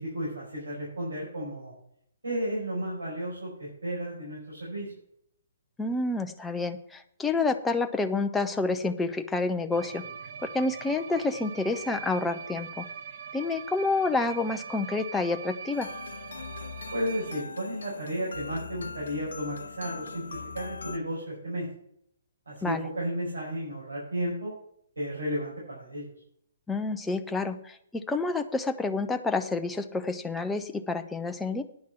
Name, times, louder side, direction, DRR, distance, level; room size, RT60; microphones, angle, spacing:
voice 1, 0.0-1.7 2.2-4.9 16.9-21.7 22.5-24.5 25.0-26.1, equal, 85° right, -5 dB, 5.0 m, -33 dB
voice 2, 5.8-10.0 10.4-12.9 13.3-15.9 22.6-22.8 26.7-31.6, left 3 dB, 10° left, 6 dB, 0.8 m, -29 dB
sound 1, 9.7-17.4, right 7 dB, 50° right, 1.1 m, -42 dB
sound 2, 15.7-21.0, left 5 dB, 70° left, 0.6 m, -41 dB
10.5 x 6.0 x 7.4 m, 0.69 s
figure-of-eight pair, 130°, 0 cm